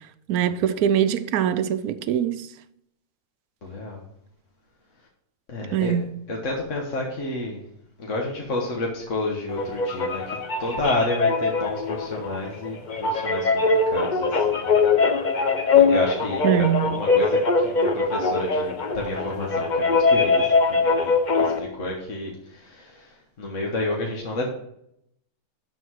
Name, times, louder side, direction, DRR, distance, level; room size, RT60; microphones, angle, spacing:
voice 1, 0.3-2.5 5.7-6.1 16.4-16.9, right 9 dB, 75° right, 1.1 m, -22 dB
voice 2, 3.6-4.0 5.5-7.6 8.0-13.6 13.9-15.0 15.7-23.1 23.4-24.5, left 2 dB, 55° left, 1.6 m, -30 dB
sound 1, 9.5-21.6, left 4 dB, 40° left, 0.8 m, -22 dB
12.0 x 4.7 x 4.7 m
omnidirectional pair, 1.6 m